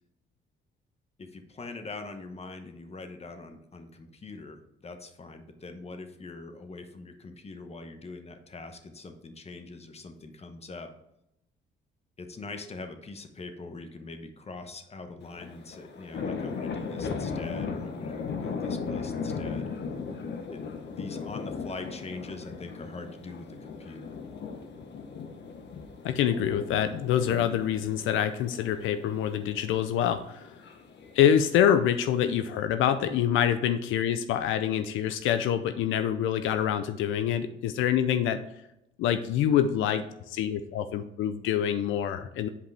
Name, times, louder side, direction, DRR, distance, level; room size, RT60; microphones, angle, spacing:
voice 1, 1.2-10.9 12.2-19.7 20.5-20.6 20.9-24.2, left 3 dB, 30° left, 7 dB, 1.1 m, -43 dB
sound 1, 15.2-31.5, left 5 dB, 60° left, 0.9 m, -37 dB
voice 2, 26.0-30.5 31.1-38.4 39.0-42.5, left 9 dB, 85° left, 10 dB, 0.5 m, -26 dB
8.2 x 5.0 x 3.4 m, 0.83 s
cardioid pair, 90°, 20 cm